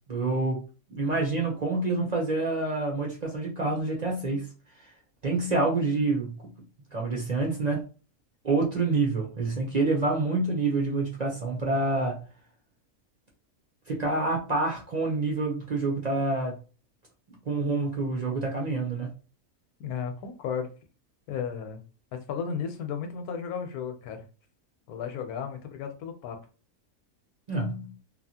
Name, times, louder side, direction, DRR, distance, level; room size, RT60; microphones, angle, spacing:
voice 1, 0.1-0.6 0.9-4.5 5.2-6.4 6.9-7.8 8.4-12.2 13.9-16.5 17.5-19.1 27.5-27.9, right 3 dB, 50° right, 0.4 m, -27 dB
voice 2, 19.8-20.7 21.3-21.8 22.1-24.2 24.9-26.4, left 7 dB, 85° left, 1.1 m, -34 dB
2.8 x 2.4 x 2.7 m
omnidirectional pair, 1.5 m